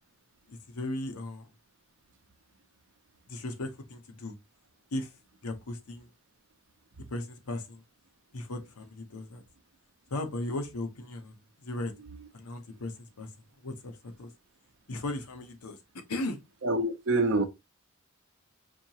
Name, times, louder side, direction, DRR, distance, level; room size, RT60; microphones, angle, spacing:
voice 1, 0.5-1.5 3.3-4.3 4.9-5.1 5.4-6.1 7.1-7.8 8.3-9.4 10.1-11.9 12.3-13.3 13.6-14.3 14.9-15.8 16.1-16.4, left 2 dB, 90° left, 0.9 m, -37 dB
voice 2, 16.6-17.5, right 2 dB, 55° right, 0.6 m, -26 dB
4.4 x 2.8 x 2.9 m
head